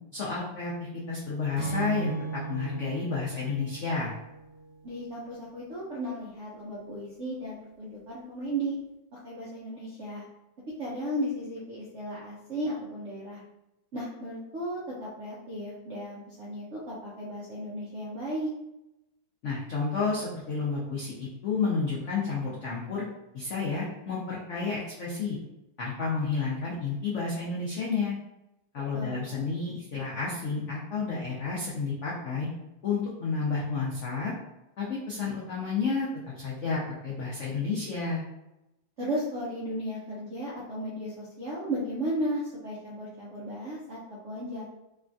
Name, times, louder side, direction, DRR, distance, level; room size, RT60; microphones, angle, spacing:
voice 1, 0.1-4.1 19.4-23.0 23.3-25.4 25.8-28.1 28.7-32.5 32.8-34.3 34.8-36.1 36.4-38.2, left 4 dB, 80° left, -6 dB, 0.6 m, -31 dB
Acoustic guitar / Strum, 1.6-5.0, right 3 dB, 25° right, 1.2 m, -36 dB
voice 2, 4.8-8.8 9.1-10.2 10.8-13.4 13.9-18.5 28.9-29.2 39.0-44.0 44.2-44.6, right 1 dB, 70° right, -7 dB, 0.6 m, -35 dB
3.2 x 2.3 x 2.5 m, 0.90 s
omnidirectional pair, 2.0 m